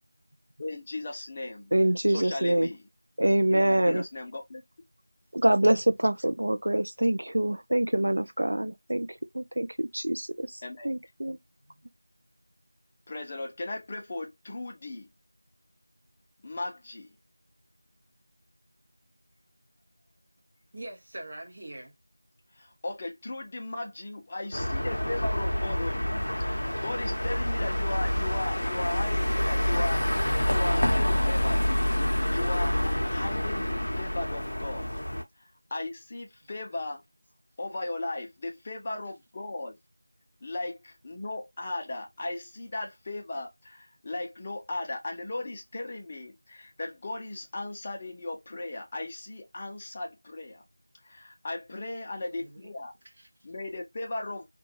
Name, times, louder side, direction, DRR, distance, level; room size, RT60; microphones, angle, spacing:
voice 1, 0.6-1.7 2.1-2.9 3.5-4.6 10.6-10.9 13.1-15.1 16.4-17.1 22.5-31.6 32.3-34.9 35.7-37.0 37.6-39.8 40.4-50.6 51.0-52.9 53.4-54.5, left 2 dB, 20° left, 0.5 m, -37 dB
voice 2, 1.7-2.7 3.2-4.0 5.3-9.1 9.3-10.6 10.8-11.4, right 1 dB, 60° right, 0.4 m, -25 dB
voice 3, 20.7-21.9 36.4-36.9 52.3-52.7 53.0-53.3, right 1 dB, 35° right, 0.7 m, -44 dB
sound 1, 24.5-35.2, left 1 dB, 65° left, 0.6 m, -27 dB
2.5 x 2.3 x 2.7 m
figure-of-eight pair, 175°, 0 cm